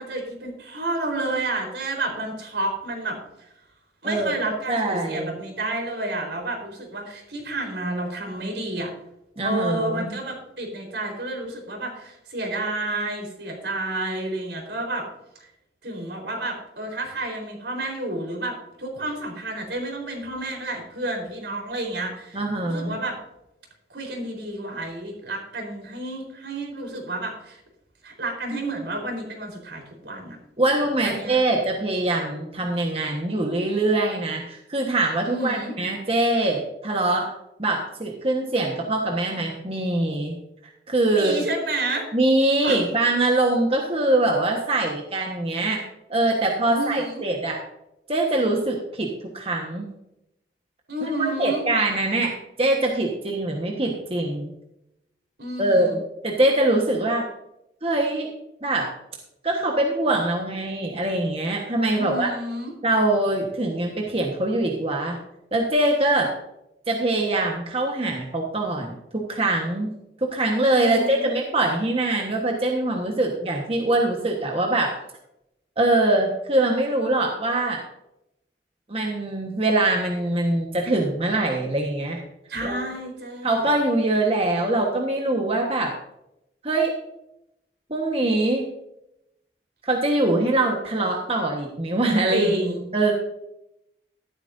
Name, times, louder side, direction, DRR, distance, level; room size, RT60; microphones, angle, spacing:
voice 1, 0.0-3.2 4.0-8.9 9.4-15.0 15.8-23.2 23.9-27.6 28.0-30.4 31.0-31.4 35.2-35.7 41.1-42.1 42.6-42.9 46.7-47.2 50.9-51.6 55.4-56.0 61.9-62.7 70.7-71.3 82.5-83.7 92.3-92.8, right 2 dB, 80° right, 1 dB, 4.3 m, -30 dB
voice 2, 4.7-5.3 9.4-10.1 22.3-22.9 30.6-37.3 37.6-40.4 40.9-41.4 42.1-45.8 46.1-47.6 48.1-49.8 51.4-54.5 55.6-57.2 57.8-58.3 58.6-58.9 59.4-62.3 62.8-65.2 65.5-66.3 66.9-69.9 70.2-75.0 75.8-77.8 78.9-82.2 82.6-82.8 83.4-85.9 86.6-86.9 87.9-88.7 89.8-92.5 92.9-93.1, right 2 dB, 35° right, 0 dB, 1.4 m, -23 dB
13.5 x 12.0 x 2.7 m, 0.84 s
head